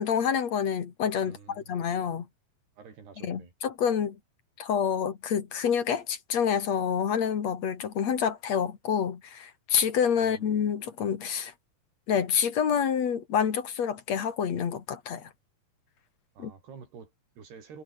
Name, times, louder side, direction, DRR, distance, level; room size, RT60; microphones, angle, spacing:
voice 1, 0.0-2.3 3.2-4.2 4.6-11.5 12.1-15.3 16.4-16.5, left 7 dB, 50° left, 3.0 m, -28 dB
voice 2, 1.2-1.7 2.8-3.5 10.2-10.6 16.4-17.8, right 5 dB, 90° right, 7.4 m, -49 dB
omnidirectional pair, 4.5 m